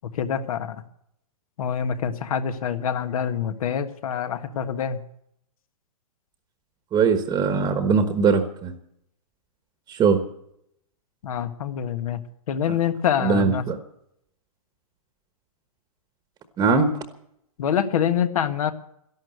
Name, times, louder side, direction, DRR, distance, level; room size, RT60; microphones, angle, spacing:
voice 1, 0.1-0.8 1.6-5.0 11.2-12.2 12.5-13.6 17.6-18.7, left 8 dB, 70° left, 9 dB, 1.5 m, -25 dB
voice 2, 6.9-8.7 9.9-10.2 13.2-13.8 16.6-16.9, right 5 dB, 20° right, 8 dB, 1.2 m, -20 dB
13.0 x 12.0 x 8.0 m, 0.76 s
hypercardioid pair, 140°, 19 cm